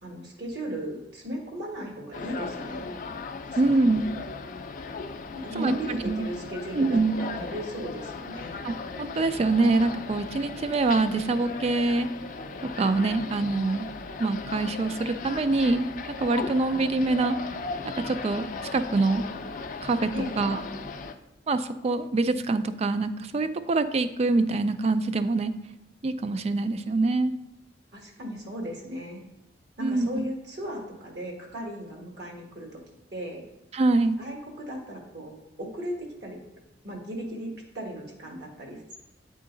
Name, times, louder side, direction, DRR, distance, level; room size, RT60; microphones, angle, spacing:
voice 1, 0.0-2.9 3.4-4.0 5.3-8.6 20.1-20.4 27.9-29.2 29.8-32.8 33.1-33.4 34.2-36.4 36.8-39.0, equal, 65° right, 0 dB, 1.4 m, -36 dB
sound 1, 2.1-21.1, left 4 dB, 45° left, 0.4 m, -37 dB
voice 2, 3.6-4.1 5.5-5.7 6.0-6.2 6.7-7.2 8.6-12.1 12.6-13.9 14.2-15.9 16.2-17.4 18.0-19.2 19.8-20.6 21.5-25.5 26.0-27.3 29.8-30.1 33.7-34.2, right 3 dB, 35° right, 12 dB, 0.3 m, -25 dB
8.8 x 3.8 x 3.8 m, 0.91 s
head